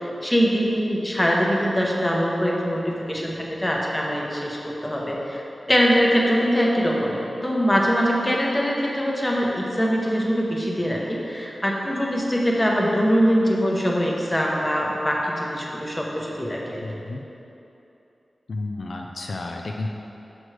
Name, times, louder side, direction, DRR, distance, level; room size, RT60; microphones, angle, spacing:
voice 1, 0.0-5.4 5.7-16.8, equal, 15° left, -2 dB, 0.9 m, -23 dB
voice 2, 16.8-17.2 18.5-19.9, left 2 dB, 70° left, 1 dB, 0.4 m, -31 dB
6.3 x 6.1 x 3.2 m, 2.9 s
wide cardioid pair, 90°, 0 cm